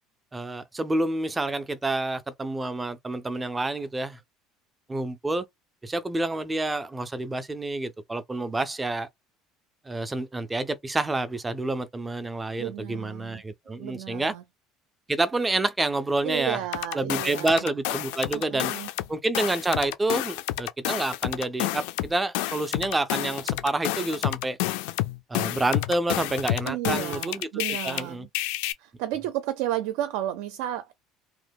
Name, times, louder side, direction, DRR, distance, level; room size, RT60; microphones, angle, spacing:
voice 1, 0.3-4.2 4.9-5.4 5.8-9.1 9.9-14.4 15.1-16.6 16.9-18.7 19.1-24.6 25.3-27.5 27.8-28.3, right 2 dB, 10° right, 0.3 m, -28 dB
voice 2, 12.6-13.4 13.8-14.4 16.2-17.6 18.3-18.9 26.6-28.3 28.8-30.9, right 13 dB, 75° right, 0.5 m, -32 dB
sound 1, 16.7-19.1 19.3-28.0 28.3-28.7, left 16 dB, 80° left, 0.3 m, -29 dB
2.9 x 2.0 x 3.4 m
cardioid pair, 170°, 0 cm